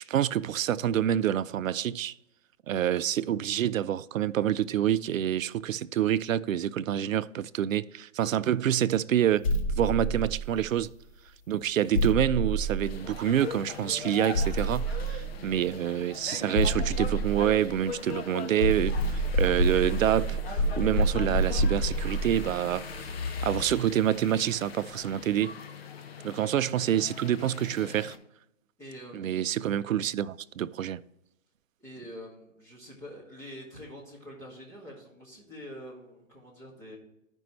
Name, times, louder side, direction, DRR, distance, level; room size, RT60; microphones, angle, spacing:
voice 1, 0.0-2.2 2.7-9.5 9.8-10.9 11.5-22.9 23.4-25.6 26.2-28.2 29.1-31.0, right 10 dB, 80° right, 0.5 m, -27 dB
sound 1, 9.4-10.9 11.9-13.6 14.3-15.7 16.5-18.1 18.6-23.9, right 1 dB, 25° left, 0.7 m, -29 dB
sound 2, 12.8-28.2, left 6 dB, 50° left, 0.9 m, -41 dB
voice 2, 28.8-29.5 31.8-37.0, equal, 5° left, 1.9 m, -46 dB
12.5 x 5.3 x 3.1 m
hypercardioid pair, 160°, 39 cm